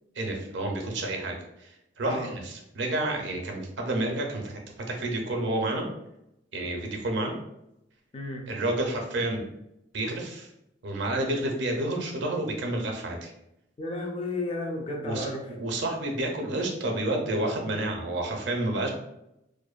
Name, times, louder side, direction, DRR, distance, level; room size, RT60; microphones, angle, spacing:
voice 1, 0.2-5.9 6.5-7.4 8.5-9.4 9.9-10.5 10.8-13.3 15.0-18.9, right 1 dB, 65° right, 2 dB, 0.5 m, -30 dB
voice 2, 2.0-2.3 8.1-8.5 13.8-15.4, left 2 dB, 30° left, 1 dB, 0.4 m, -33 dB
2.5 x 2.1 x 2.3 m, 0.85 s
head